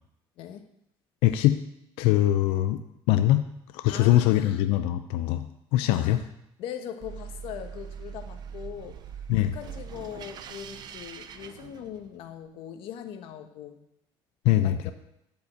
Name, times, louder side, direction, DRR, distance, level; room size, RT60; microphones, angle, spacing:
voice 1, 1.2-1.6 2.0-2.8 3.1-3.4 3.7-5.5 5.7-6.2 9.3-9.6 14.4-14.9, left 13 dB, 90° left, 9 dB, 0.6 m, -22 dB
voice 2, 3.9-4.6 5.9-6.2 6.6-9.0 9.4-13.8 14.6-14.9, left 9 dB, 70° left, 7 dB, 1.4 m, -40 dB
sound 1, 7.0-12.3, right 7 dB, 50° right, 0.8 m, -42 dB
13.0 x 5.6 x 8.1 m, 0.80 s
cardioid pair, 135°, 9 cm